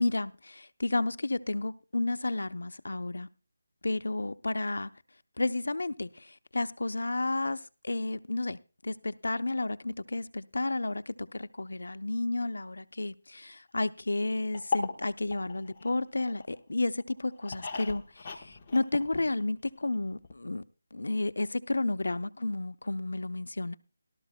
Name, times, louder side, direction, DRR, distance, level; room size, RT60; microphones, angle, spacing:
voice 1, 0.0-3.3 3.8-4.9 5.4-20.6 20.9-23.8, left 2 dB, 90° left, 0.7 m, -32 dB
sound 1, 14.5-16.6 17.0-19.7 19.9-20.0 20.2-20.3, left 4 dB, 20° left, 1.1 m, -37 dB
18.0 x 12.5 x 2.2 m
figure-of-eight pair, 175°, 0 cm